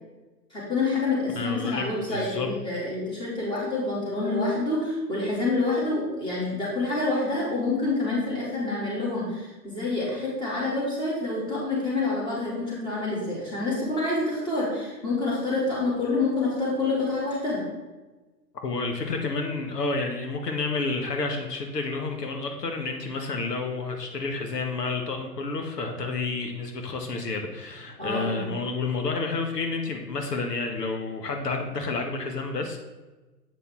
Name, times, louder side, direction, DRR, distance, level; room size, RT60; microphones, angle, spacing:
voice 1, 0.5-17.6 28.0-28.5, left 2 dB, 10° left, -6 dB, 2.4 m, -27 dB
voice 2, 1.4-2.5 18.6-32.8, left 3 dB, 75° left, 3 dB, 1.3 m, -30 dB
8.2 x 5.5 x 3.6 m, 1.2 s
hypercardioid pair, 130°, 49 cm